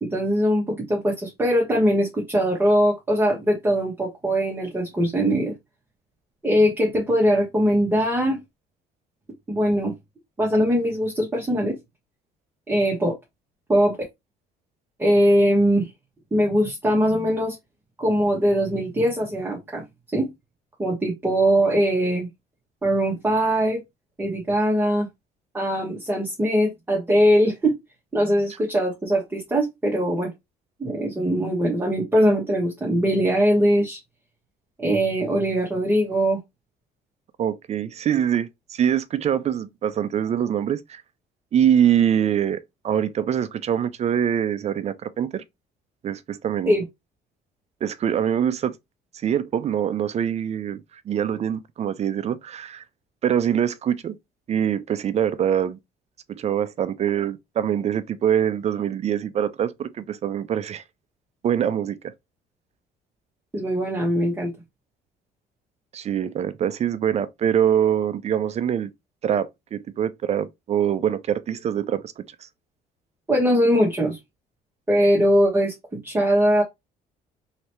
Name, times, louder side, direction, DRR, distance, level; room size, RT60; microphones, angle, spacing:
voice 1, 0.0-5.5 6.4-8.4 9.5-9.9 10.4-11.8 12.7-13.2 13.7-14.0 15.0-15.9 16.3-17.5 18.0-19.8 20.1-20.3 20.8-22.3 22.8-23.8 24.2-25.1 25.5-27.7 28.1-30.3 30.8-34.0 34.8-36.4 46.7-46.8 63.5-64.5 73.3-74.2 74.9-76.6, equal, 10° right, 1.2 m, -21 dB
voice 2, 37.4-41.0 41.5-45.4 46.0-46.8 47.8-48.8 49.2-50.8 51.1-52.8 53.2-54.2 54.5-55.8 56.3-60.8 61.4-62.0 65.9-68.9 69.2-72.2, right 9 dB, 40° right, 0.4 m, -24 dB
3.2 x 2.9 x 3.0 m
cardioid pair, 110°, 17 cm